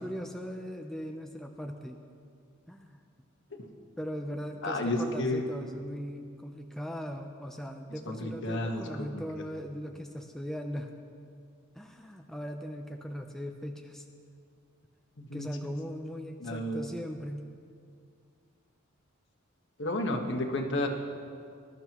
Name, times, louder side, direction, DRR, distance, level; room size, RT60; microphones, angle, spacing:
voice 1, 0.0-2.0 2.7-3.0 4.0-11.0 11.7-14.1 15.3-17.4, equal, ahead, 3 dB, 0.5 m, -39 dB
voice 2, 4.6-5.4 8.1-9.2 15.2-15.7 16.4-16.8 19.8-20.9, left 1 dB, 60° left, 3 dB, 1.3 m, -32 dB
20.0 x 12.0 x 3.0 m, 2.3 s
head